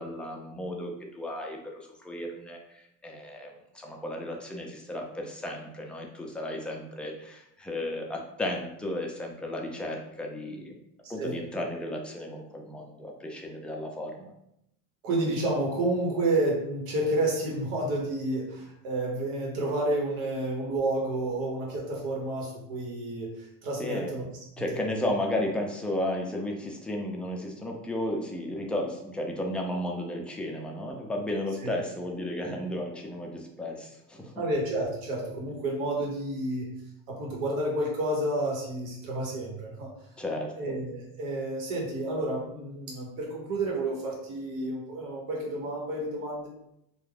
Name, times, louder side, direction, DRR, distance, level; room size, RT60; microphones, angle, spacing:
voice 1, 0.0-10.8 11.1-14.3 23.8-24.2 24.6-34.3 40.2-40.5, left 1 dB, 5° left, 0 dB, 0.4 m, -34 dB
voice 2, 11.0-11.4 15.0-24.2 24.6-25.0 31.6-31.7 34.4-36.7 37.1-39.9 40.6-46.5, right 1 dB, 85° right, -1 dB, 1.0 m, -30 dB
2.3 x 2.2 x 3.2 m, 0.79 s
supercardioid pair, 85°, 39 cm